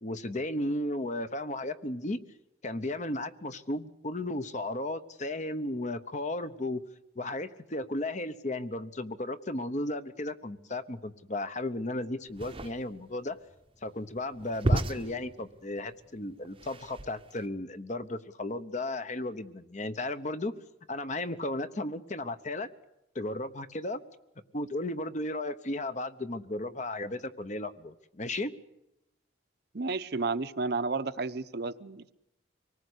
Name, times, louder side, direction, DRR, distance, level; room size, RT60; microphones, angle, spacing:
voice 1, 0.0-2.2 2.6-6.8 7.2-13.4 13.8-20.5 20.9-22.7 23.1-24.0 24.5-28.5, left 2 dB, 35° left, 11 dB, 1.0 m, -34 dB
sound 1, 12.3-17.5, right 1 dB, 25° right, 0.8 m, -34 dB
voice 2, 29.7-32.1, right 3 dB, 55° right, 11 dB, 0.8 m, -32 dB
25.0 x 19.0 x 8.2 m, 0.89 s
head